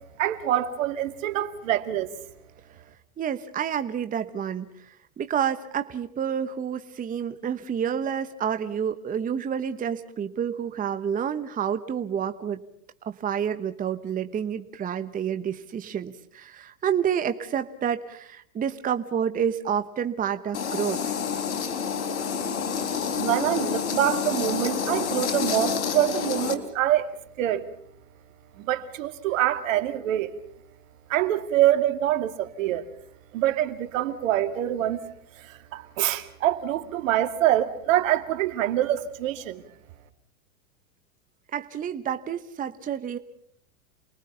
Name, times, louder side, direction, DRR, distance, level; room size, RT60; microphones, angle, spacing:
voice 1, 0.2-2.1 23.1-27.1 27.4-27.6 28.6-30.3 31.1-32.8 33.3-35.0 35.7-39.6, right 12 dB, 65° right, 2.4 m, -25 dB
voice 2, 3.2-12.6 13.1-21.0 41.5-43.2, right 8 dB, 20° right, 1.1 m, -29 dB
sound 1, 20.5-26.6, left 7 dB, 80° left, 3.5 m, -28 dB
29.0 x 22.0 x 5.7 m
hypercardioid pair, 115°, 41 cm